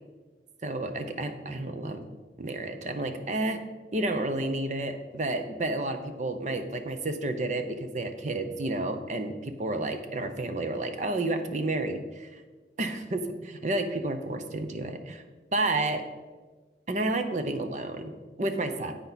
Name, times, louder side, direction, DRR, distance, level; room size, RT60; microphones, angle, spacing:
voice 1, 0.6-2.0 2.4-3.6 3.9-12.4 12.8-15.2 15.5-16.0 16.9-19.0, right 2 dB, 40° right, 7 dB, 0.8 m, -31 dB
10.0 x 8.2 x 4.1 m, 1.3 s
head